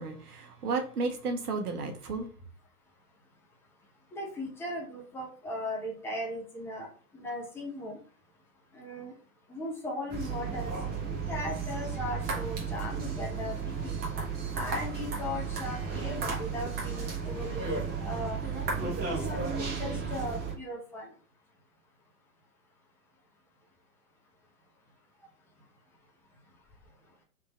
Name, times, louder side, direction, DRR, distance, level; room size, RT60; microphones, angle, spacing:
voice 1, 0.0-2.3, right 3 dB, 75° right, 1.3 m, -33 dB
voice 2, 4.1-6.9 7.1-8.0 8.7-9.1 9.5-10.7 11.0-14.0 14.5-18.4 18.9-21.1, left 1 dB, 5° left, 0.7 m, -38 dB
sound 1, 10.1-20.5, right 5 dB, 20° right, 1.1 m, -33 dB
3.7 x 2.7 x 4.5 m
hypercardioid pair, 125°, 46 cm